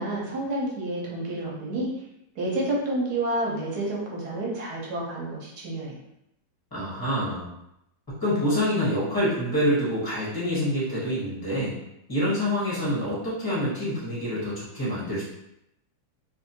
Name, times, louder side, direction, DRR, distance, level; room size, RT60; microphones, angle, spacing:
voice 1, 0.0-1.9 2.4-6.0, right 1 dB, 60° right, -4 dB, 1.2 m, -29 dB
voice 2, 6.7-7.5 8.2-11.7 12.1-15.2, equal, 20° left, -8 dB, 0.6 m, -26 dB
3.1 x 2.6 x 2.7 m, 0.81 s
omnidirectional pair, 2.2 m